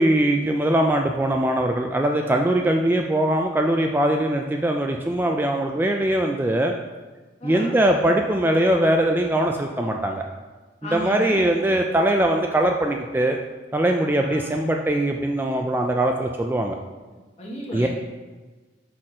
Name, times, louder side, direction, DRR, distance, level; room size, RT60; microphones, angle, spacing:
voice 1, 0.0-6.7 7.4-10.2 10.8-13.4 13.7-16.8 17.7-17.9, right 1 dB, 10° right, 2 dB, 0.3 m, -21 dB
voice 2, 7.4-7.8 10.8-11.4 14.1-14.8 17.4-17.9, equal, 40° left, -2 dB, 1.3 m, -34 dB
5.9 x 4.2 x 4.9 m, 1.3 s
head